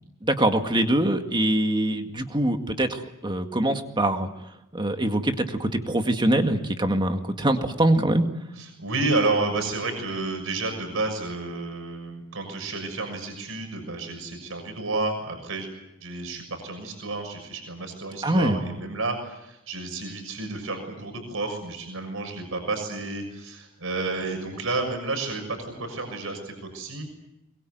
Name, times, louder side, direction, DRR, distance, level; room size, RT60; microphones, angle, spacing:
voice 1, 0.2-4.3 4.7-8.3 18.2-18.6, right 1 dB, 20° right, 6 dB, 2.0 m, -23 dB
voice 2, 8.6-15.7 16.0-27.1, right 3 dB, 70° right, 4 dB, 6.5 m, -30 dB
24.0 x 22.0 x 9.4 m, 0.86 s
head